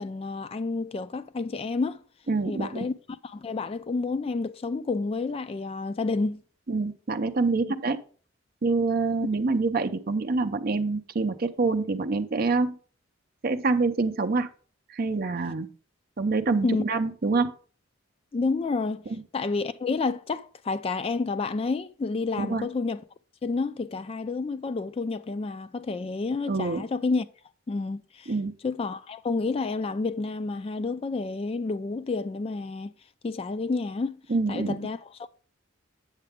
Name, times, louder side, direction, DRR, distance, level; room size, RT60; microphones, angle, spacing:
voice 1, 0.0-2.0 2.5-2.9 3.2-6.4 16.6-16.8 18.3-19.1 19.3-23.0 23.4-27.3 27.7-28.3 28.6-32.9 33.2-34.2 34.5-35.3, left 3 dB, 30° left, 0.3 m, -29 dB
voice 2, 2.3-2.9 6.7-8.0 8.6-12.8 13.4-14.5 14.9-15.7 16.2-17.5 19.1-19.2 22.4-22.7 26.5-26.8 28.3-28.5 34.3-34.8, right 3 dB, 45° right, 0.5 m, -26 dB
8.1 x 6.7 x 3.5 m
head